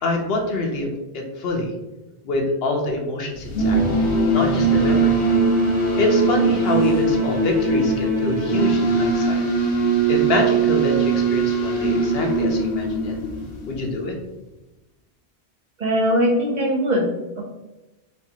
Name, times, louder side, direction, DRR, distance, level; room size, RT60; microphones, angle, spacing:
voice 1, 0.0-1.7 2.2-3.8 4.3-5.2 6.0-9.4 10.1-13.1 13.7-14.1, left 2 dB, 65° left, 1 dB, 0.9 m, -25 dB
sound 1, 3.3-13.8, right 3 dB, 85° left, 1.2 m, -21 dB
Singing / Musical instrument, 3.7-8.7, left 1 dB, 30° left, 1.6 m, -29 dB
voice 2, 15.8-17.5, equal, 50° right, 0 dB, 0.6 m, -21 dB
4.4 x 2.4 x 2.8 m, 1.0 s
omnidirectional pair, 1.1 m